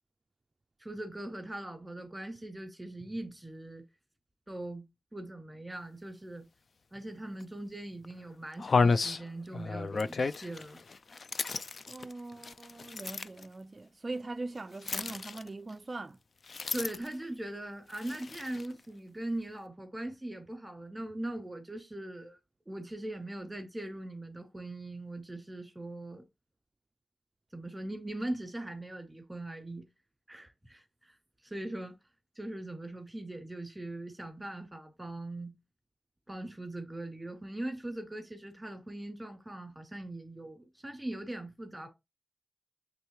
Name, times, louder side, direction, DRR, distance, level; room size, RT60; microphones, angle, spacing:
voice 1, 0.8-3.8 4.5-4.9 5.1-6.5 6.9-10.8 16.7-22.4 22.7-26.2 27.5-29.9 30.3-31.1 31.4-32.0 32.3-35.5 36.3-41.9, right 1 dB, 10° right, 2.9 m, -40 dB
sound 1, 7.4-7.5 8.0-8.1 8.6-13.5 14.8-15.7 16.4-17.2 17.9-18.7, left 4 dB, 65° left, 0.4 m, -32 dB
voice 2, 11.9-16.2, right 2 dB, 40° right, 0.3 m, -41 dB
8.7 x 3.6 x 3.1 m
wide cardioid pair, 80°, 0 cm